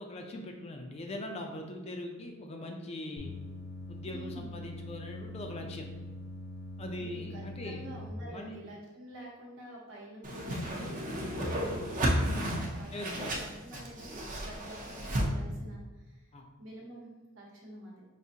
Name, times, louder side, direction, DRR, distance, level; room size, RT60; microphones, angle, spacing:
voice 1, 0.0-3.3 3.9-5.8 6.8-8.5 12.9-13.3 13.7-13.8 16.3-16.4, left 1 dB, 30° left, 3 dB, 0.4 m, -41 dB
sound 1, 3.2-8.1, left 1 dB, 65° left, 0.8 m, -43 dB
voice 2, 4.0-4.5 7.0-16.3 16.6-18.0, right 1 dB, 65° right, -2 dB, 1.0 m, -48 dB
Whoosh swoosh swish, 10.2-15.3, equal, 40° right, 0.6 m, -32 dB
4.9 x 2.6 x 2.7 m, 1.1 s
head